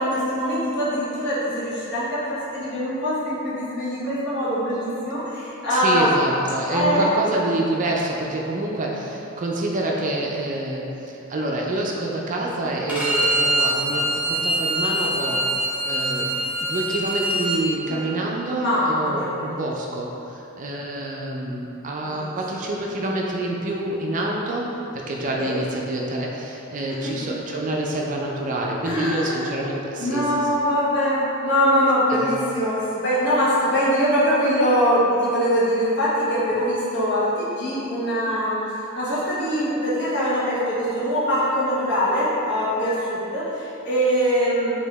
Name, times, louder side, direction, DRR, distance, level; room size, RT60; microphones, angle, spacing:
voice 1, 0.0-6.1 6.7-7.1 17.9-18.0 18.5-19.6 22.2-22.3 25.4-25.6 28.8-29.5 30.0-38.6 38.9-44.8, equal, 55° left, -9 dB, 1.2 m, -23 dB
voice 2, 5.7-16.3 16.6-24.7 24.9-30.2 32.1-32.2, right 1 dB, 40° right, -2 dB, 0.4 m, -27 dB
Bowed string instrument, 12.9-17.6, right 1 dB, 5° right, 0.7 m, -24 dB
4.9 x 2.8 x 3.3 m, 2.9 s
head